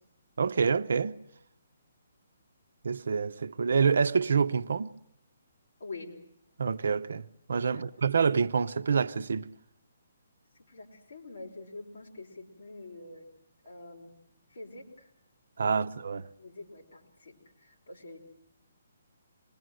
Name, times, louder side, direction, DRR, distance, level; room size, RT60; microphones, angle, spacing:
voice 1, 0.4-1.2 2.8-4.9 6.6-9.5 15.6-16.3, right 5 dB, 65° right, 0.8 m, -27 dB
voice 2, 5.8-6.1 7.7-7.8 10.7-13.3 13.6-14.1 14.5-15.1 16.4-18.2, left 2 dB, 50° left, 5.1 m, -46 dB
26.5 x 20.5 x 7.8 m
hypercardioid pair, 175°, 0 cm